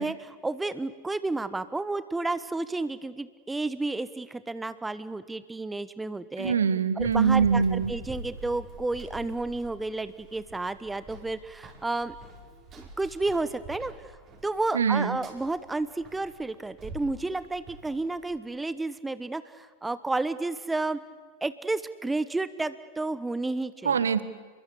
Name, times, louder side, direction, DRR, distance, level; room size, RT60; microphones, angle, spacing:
voice 1, 0.0-6.6 7.0-12.1 12.8-13.9 14.4-21.0 21.4-24.1, right 2 dB, 10° right, 15 dB, 1.0 m, -31 dB
voice 2, 6.4-7.9 14.7-15.2 23.8-24.2, right 6 dB, 70° right, 15 dB, 1.4 m, -23 dB
Run, 7.0-18.4, right 2 dB, 30° right, 5.3 m, -45 dB
29.5 x 22.0 x 8.4 m, 1.4 s
figure-of-eight pair, 90°, 0 cm